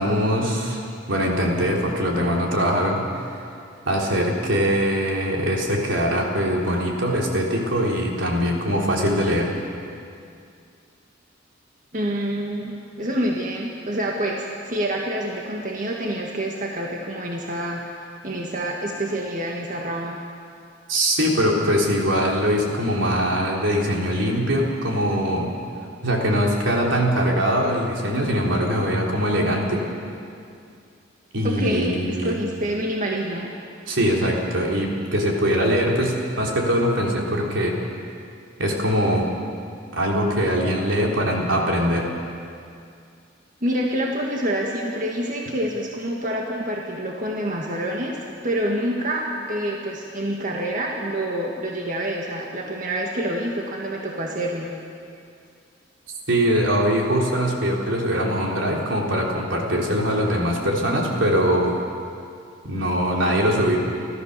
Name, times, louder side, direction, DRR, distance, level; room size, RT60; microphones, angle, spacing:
voice 1, 0.0-3.1 3.9-9.5 20.9-25.5 26.0-29.8 31.3-32.4 33.9-37.7 38.6-39.3 39.9-42.1 56.3-61.7 62.6-63.8, equal, 80° right, -1 dB, 3.7 m, -22 dB
voice 2, 11.9-20.2 31.4-33.5 43.6-48.2 48.4-54.7, right 1 dB, 45° right, -1 dB, 1.9 m, -27 dB
29.5 x 14.0 x 6.8 m, 2.4 s
head